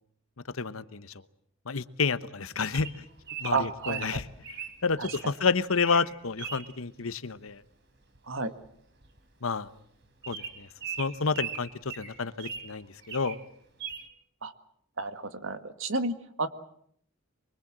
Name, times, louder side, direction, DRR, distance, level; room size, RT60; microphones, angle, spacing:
voice 1, 0.6-1.1 1.7-3.0 3.4-4.3 4.8-7.6 9.4-9.7 10.3-10.7 11.0-13.4, left 4 dB, 80° left, 14 dB, 1.1 m, -30 dB
Bird vocalization bird call bird song, 2.7-5.3 5.7-6.1 6.4-6.7 8.1-8.4 8.6-8.7 9.0-9.2 9.6-9.7 10.2-12.7 13.0-13.4 13.8-14.0, right 7 dB, 55° right, 3.5 m, -39 dB
voice 2, 3.5-4.2 8.3-8.5 14.4-14.5 15.0-16.5, right 3 dB, 75° right, 9 dB, 1.9 m, -31 dB
24.0 x 24.0 x 7.6 m, 0.68 s
head